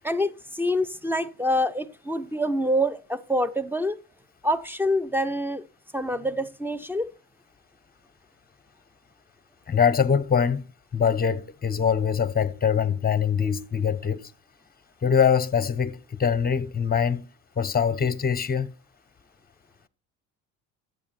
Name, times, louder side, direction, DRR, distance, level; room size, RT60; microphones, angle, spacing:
voice 1, 0.0-4.0 4.4-5.6 5.9-7.1, equal, 5° right, 1.0 m, -26 dB
voice 2, 9.7-10.6 10.9-14.3 15.0-17.3 17.6-18.7, left 7 dB, 20° left, 1.2 m, -23 dB
14.0 x 8.7 x 4.4 m
supercardioid pair, 80°, 40 cm